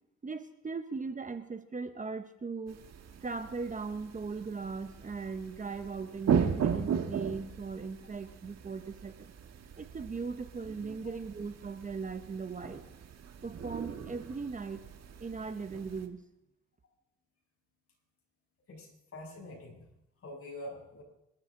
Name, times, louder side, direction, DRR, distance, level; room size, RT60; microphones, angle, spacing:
voice 1, 0.2-2.8 3.2-9.3 9.8-12.8 13.4-14.8 15.2-16.2, right 4 dB, 25° right, 9 dB, 0.9 m, -39 dB
sound 1, 2.7-16.1, right 7 dB, 60° right, 1.6 m, -37 dB
voice 2, 18.7-19.8 20.2-21.0, left 1 dB, 50° left, -1 dB, 7.1 m, -45 dB
27.0 x 12.5 x 3.8 m, 0.87 s
cardioid pair, 90°, 30 cm